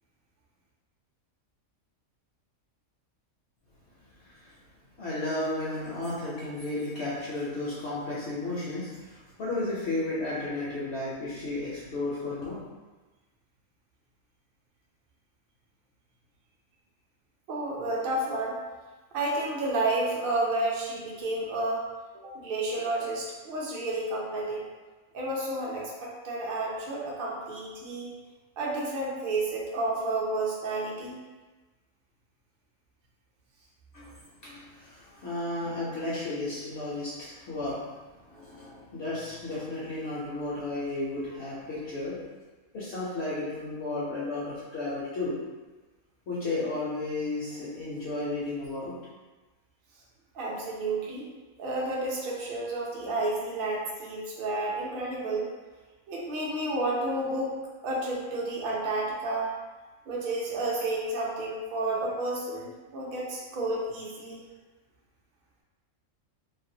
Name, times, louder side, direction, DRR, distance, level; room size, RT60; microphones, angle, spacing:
voice 1, 5.0-12.6 33.9-37.8 38.3-42.2 42.7-45.3 46.3-48.9, left 2 dB, 60° left, -8 dB, 0.8 m, -33 dB
voice 2, 17.5-18.6 19.1-21.8 22.2-24.6 25.1-28.1 28.6-31.2 50.3-51.3 51.6-55.5 56.1-57.5 57.8-59.5 60.1-64.4, right 2 dB, 55° right, -4 dB, 0.6 m, -31 dB
2.5 x 2.2 x 2.7 m, 1.2 s
omnidirectional pair, 1.4 m